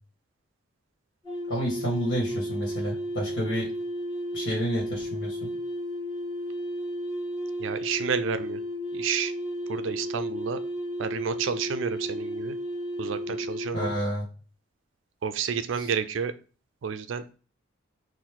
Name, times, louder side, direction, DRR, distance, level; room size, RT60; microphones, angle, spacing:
sound 1, 1.2-14.0, equal, 25° left, 1.2 m, -33 dB
voice 1, 1.5-3.7 4.3-5.5 13.7-14.3 15.8-15.9, equal, 65° left, -4 dB, 2.0 m, -30 dB
voice 2, 7.6-8.6 8.9-9.3 9.7-10.6 11.0-12.6 13.0-13.9 15.2-16.3 16.8-17.2, right 6 dB, 70° right, 10 dB, 0.4 m, -30 dB
4.3 x 2.6 x 3.7 m, 0.37 s
head